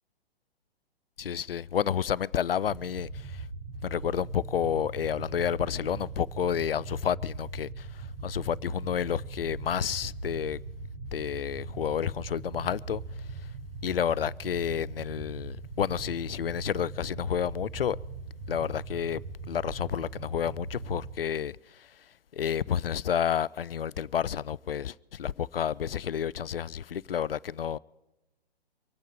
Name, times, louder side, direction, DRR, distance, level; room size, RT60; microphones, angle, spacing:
voice 1, 1.2-3.5 3.8-10.6 11.1-13.5 13.8-18.0 18.5-19.2 19.5-22.0 22.3-27.8, left 8 dB, 65° left, 0.5 m, -30 dB
sound 1, 2.7-21.1, right 3 dB, 35° right, 1.6 m, -40 dB
25.0 x 9.1 x 5.0 m
figure-of-eight pair, 125°, 31 cm